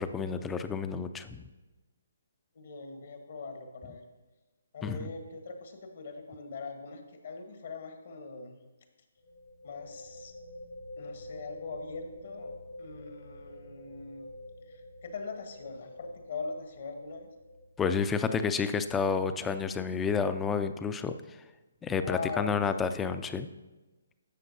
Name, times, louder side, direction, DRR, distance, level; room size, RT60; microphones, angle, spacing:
voice 1, 0.0-1.4 4.8-5.1 17.8-21.1 21.8-23.5, left 5 dB, 10° left, 10 dB, 0.4 m, -30 dB
voice 2, 2.5-4.0 4.7-8.5 9.6-10.3 11.0-12.5 12.8-14.3 14.7-17.3 22.0-22.7, left 4 dB, 60° left, 5 dB, 1.3 m, -41 dB
sound 1, 6.1-6.3 6.6-6.7 9.2-20.5, left 1 dB, 85° left, 2.4 m, -49 dB
11.5 x 7.4 x 2.7 m, 1.2 s
hypercardioid pair, 150°, 0 cm